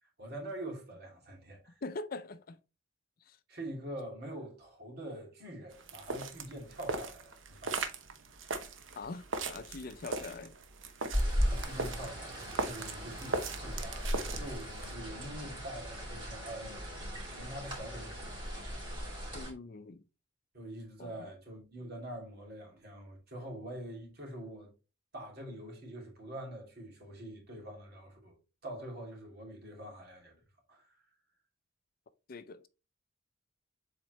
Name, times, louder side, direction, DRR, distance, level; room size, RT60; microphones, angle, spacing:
voice 1, 0.0-1.8 3.5-7.8 11.4-18.6 20.5-24.7 25.1-28.4 28.6-30.4 30.7-31.0, right 1 dB, 55° right, 2.8 m, -45 dB
voice 2, 1.8-2.6 3.3-3.4 9.0-10.5 19.3-20.0 21.0-21.3 32.3-32.7, left 3 dB, 50° left, 0.5 m, -43 dB
sound 1, 5.7-14.9, right 3 dB, 80° right, 0.9 m, -39 dB
sound 2, 11.1-19.5, equal, 25° right, 2.7 m, -37 dB
7.3 x 4.4 x 3.1 m
head